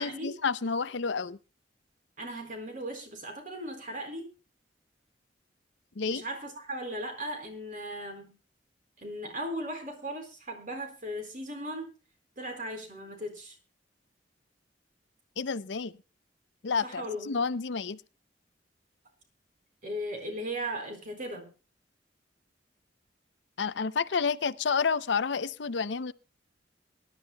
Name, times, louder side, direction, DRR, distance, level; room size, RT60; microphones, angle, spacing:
voice 1, 0.0-1.4 6.0-6.2 15.4-15.9 16.6-18.0 23.6-26.1, left 5 dB, 75° left, 0.6 m, -30 dB
voice 2, 2.2-4.3 6.1-8.3 9.0-11.9 12.4-13.6 16.8-17.4 19.8-21.5, equal, 45° right, 4.3 m, -37 dB
23.5 x 11.5 x 2.3 m
head